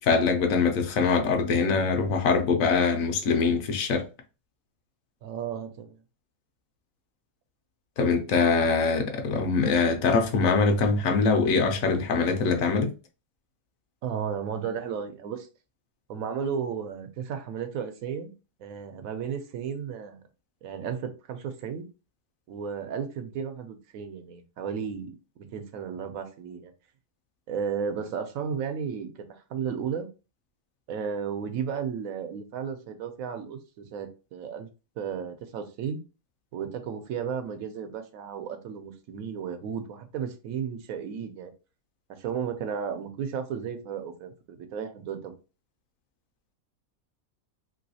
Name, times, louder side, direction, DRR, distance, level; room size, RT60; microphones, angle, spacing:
voice 1, 0.0-4.1 8.0-12.9, left 4 dB, 75° left, 1.0 m, -23 dB
voice 2, 5.2-6.0 14.0-15.5 16.1-18.3 18.6-20.2 20.6-21.9 22.5-26.7 27.5-30.1 30.9-34.7 35.0-36.0 36.5-41.5 42.2-45.4, right 7 dB, 80° right, 1.1 m, -34 dB
3.0 x 3.0 x 2.7 m
omnidirectional pair, 1.5 m